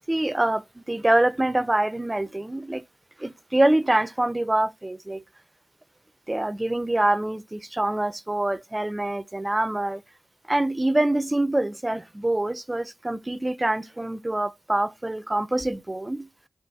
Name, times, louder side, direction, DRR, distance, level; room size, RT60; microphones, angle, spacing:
voice 1, 0.1-2.8 3.2-5.2 6.3-10.0 10.5-16.3, right 1 dB, 25° right, 0.4 m, -25 dB
4.0 x 2.5 x 3.4 m
cardioid pair, 40°, 0 cm